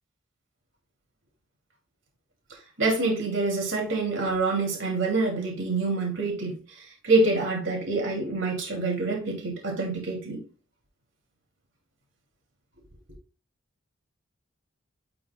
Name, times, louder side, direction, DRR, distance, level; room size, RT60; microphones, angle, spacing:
voice 1, 2.8-6.6 7.0-10.4, right 3 dB, 85° right, 2.5 m, -26 dB
9.9 x 4.8 x 2.2 m
head